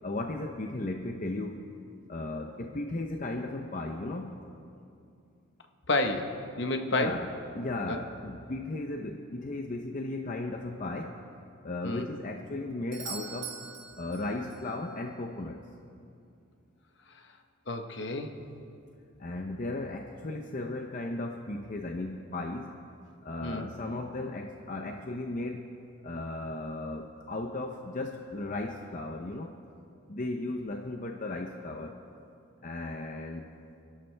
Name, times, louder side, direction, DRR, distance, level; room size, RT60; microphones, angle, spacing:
voice 1, 0.0-1.6 2.1-4.5 6.9-11.2 11.6-13.6 14.0-15.7 19.2-22.8 23.2-25.7 26.0-29.6 30.1-32.0 32.6-33.5, left 2 dB, 40° left, 3 dB, 0.6 m, -36 dB
voice 2, 5.9-7.2 7.9-8.0 11.8-12.1 17.7-18.3 23.4-23.7, left 2 dB, 60° left, 5 dB, 1.1 m, -30 dB
Doorbell, 12.9-14.8 18.8-18.9, right 6 dB, 60° right, 1.4 m, -42 dB
26.5 x 12.0 x 3.3 m, 2.6 s
head